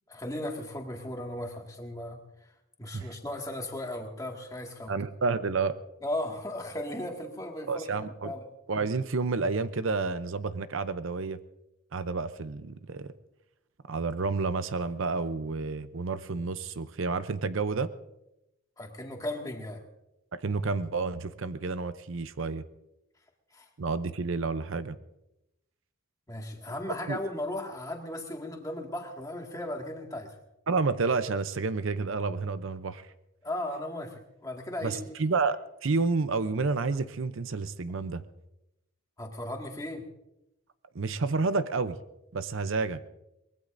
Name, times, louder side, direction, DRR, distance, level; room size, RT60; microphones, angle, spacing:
voice 1, 0.1-2.2 2.8-4.9 6.0-7.9 8.2-8.5 18.8-19.8 23.5-23.7 26.3-30.4 33.4-35.0 39.2-40.1, left 1 dB, 15° left, 1 dB, 1.9 m, -36 dB
voice 2, 4.9-5.7 7.7-8.3 8.7-11.4 11.9-13.1 13.9-17.9 20.3-22.6 23.8-25.0 27.1-27.2 30.7-33.1 34.8-38.2 40.9-42.0 42.3-43.0, right 4 dB, 65° right, 12 dB, 0.6 m, -30 dB
23.5 x 20.5 x 2.6 m, 0.89 s
head